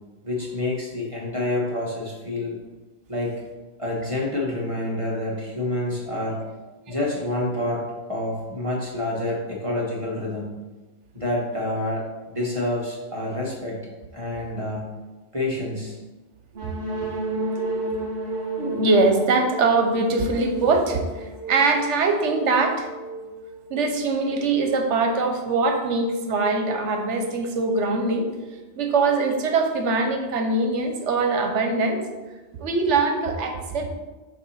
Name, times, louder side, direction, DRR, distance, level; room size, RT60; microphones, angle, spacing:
voice 1, 0.2-2.5 3.1-3.4 3.8-6.4 6.9-7.8 8.1-10.5 11.1-12.0 12.3-13.8 14.1-14.9 15.3-16.0, left 1 dB, 30° right, -4 dB, 1.3 m, -27 dB
sound 1, 16.5-24.2, right 2 dB, 60° right, 1.8 m, -32 dB
voice 2, 17.5-18.0 18.3-22.9 23.7-28.3 28.8-32.0 32.5-33.9, right 3 dB, 80° right, 4 dB, 1.1 m, -23 dB
7.1 x 2.8 x 5.6 m, 1.2 s
omnidirectional pair, 1.2 m